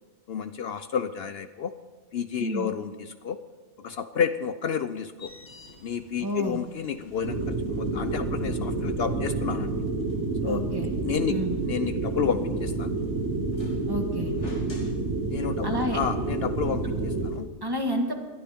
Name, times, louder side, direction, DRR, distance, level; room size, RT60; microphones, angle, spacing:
voice 1, 0.3-1.7 2.1-3.4 3.8-5.3 5.8-9.7 10.4-10.6 11.0-11.3 11.6-12.9 15.3-17.5, left 7 dB, 65° left, 10 dB, 0.8 m, -30 dB
sound 1, 5.2-17.4, left 1 dB, 90° left, 2.5 m, -50 dB
voice 2, 6.2-6.6 10.4-10.9 11.3-11.6 13.9-14.3 15.6-16.0 17.6-18.2, equal, 20° right, 3 dB, 1.6 m, -30 dB
sound 2, 7.2-17.3, right 2 dB, 85° right, 1.7 m, -29 dB
21.0 x 13.0 x 3.6 m, 1.4 s
omnidirectional pair, 1.2 m